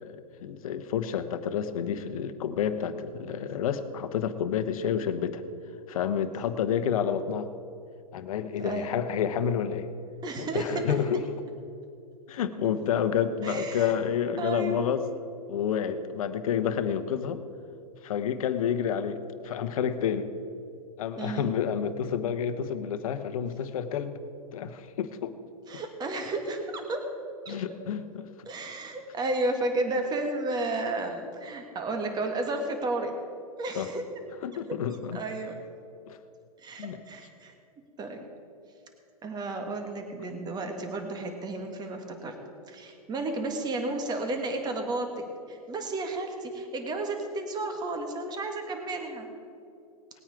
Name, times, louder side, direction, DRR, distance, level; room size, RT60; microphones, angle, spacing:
voice 1, 0.0-5.4 5.9-7.5 8.1-9.9 10.4-11.4 12.3-15.0 15.5-17.4 18.0-20.3 21.0-24.2 24.5-25.4 25.7-25.8 27.5-28.3 33.7-33.9 34.4-35.2 36.1-36.2 36.8-37.0, left 8 dB, 60° left, 10 dB, 1.0 m, -29 dB
voice 2, 8.6-9.0 10.2-11.0 13.4-13.9 14.4-14.8 21.2-21.5 25.7-27.1 27.5-27.6 28.5-33.1 33.6-34.0 34.5-34.6 35.1-35.5 36.6-37.5 38.0-38.2 39.2-42.4 42.7-49.3, right 2 dB, 20° right, 5 dB, 1.7 m, -32 dB
19.0 x 9.0 x 4.8 m, 2.6 s
hypercardioid pair, 115°, 20 cm